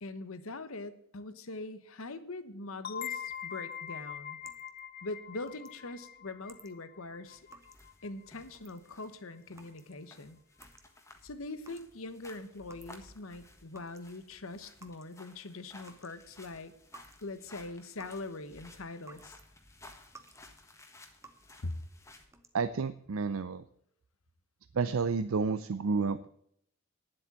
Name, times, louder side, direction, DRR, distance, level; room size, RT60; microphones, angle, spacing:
voice 1, 0.0-4.4 5.0-7.4 8.0-10.4 11.2-16.7 17.2-19.4 21.6-21.8, left 2 dB, 80° left, 12 dB, 1.1 m, -42 dB
sound 1, 2.8-8.3, left 9 dB, 45° left, 0.5 m, -43 dB
sound 2, 3.8-13.3 13.5-19.5 19.8-20.5 20.8-21.6 22.1-22.8, right 3 dB, 15° right, 1.0 m, -58 dB
sound 3, 7.2-22.3, left 2 dB, 15° left, 1.5 m, -57 dB
voice 2, 22.5-23.6 24.7-26.3, right 4 dB, 75° right, 12 dB, 0.5 m, -30 dB
10.0 x 7.7 x 7.3 m, 0.70 s
head